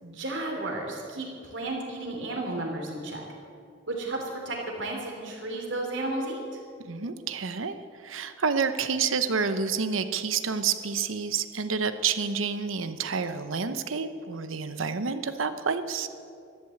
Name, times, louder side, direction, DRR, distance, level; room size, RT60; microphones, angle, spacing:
voice 1, 0.0-3.2 3.9-6.4, right 2 dB, 70° right, 0 dB, 3.3 m, -33 dB
voice 2, 6.8-7.8 8.0-16.1, right 5 dB, 90° right, 11 dB, 0.9 m, -29 dB
13.0 x 11.5 x 7.8 m, 2.5 s
head